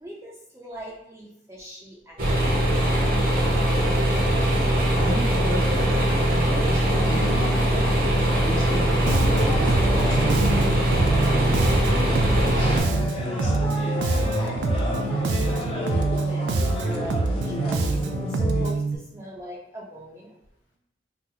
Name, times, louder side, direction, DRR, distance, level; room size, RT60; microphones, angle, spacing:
voice 1, 0.0-2.4 16.1-17.8 18.1-18.8 19.1-20.3, equal, 15° right, -5 dB, 0.4 m, -40 dB
sound 1, 2.2-12.8, right 1 dB, 55° right, 0.7 m, -21 dB
voice 2, 3.4-3.7 4.4-10.4 11.2-15.1, equal, 80° left, -7 dB, 1.1 m, -35 dB
sound 2, 6.9-18.7, left 2 dB, 35° left, 0.6 m, -32 dB
Bass guitar, 9.1-19.0, right 3 dB, 85° right, 0.3 m, -25 dB
3.7 x 2.0 x 2.8 m, 0.78 s
head